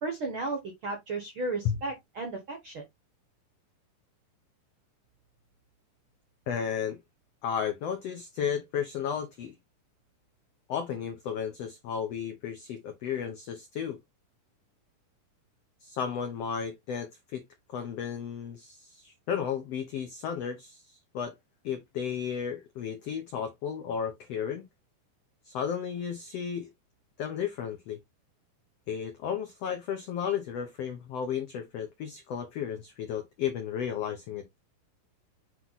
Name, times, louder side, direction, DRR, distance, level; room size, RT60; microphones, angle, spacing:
voice 1, 0.0-2.8, right 3 dB, 65° right, 1.2 m, -34 dB
voice 2, 6.5-7.0 7.4-9.5 10.7-14.0 15.8-17.4 17.7-21.3 21.6-24.6 25.4-26.7 27.2-28.0 28.9-34.4, left 8 dB, 85° left, 1.4 m, -33 dB
7.7 x 3.0 x 4.0 m
omnidirectional pair, 4.1 m